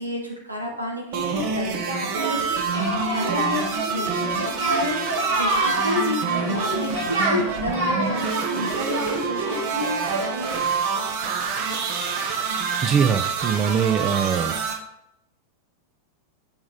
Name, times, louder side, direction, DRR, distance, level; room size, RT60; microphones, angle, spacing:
voice 1, 0.0-3.6 3.9-6.9 7.2-10.0 10.2-10.5, left 1 dB, 85° right, 0 dB, 1.9 m, -30 dB
sound 1, 1.1-14.7, right 5 dB, 45° right, 1.3 m, -27 dB
Singing, 2.1-10.5, right 1 dB, 60° right, 2.9 m, -28 dB
voice 2, 12.8-14.5, right 7 dB, 25° right, 9 dB, 0.5 m, -22 dB
8.6 x 5.1 x 4.0 m, 0.83 s
figure-of-eight pair, 90°, 0 cm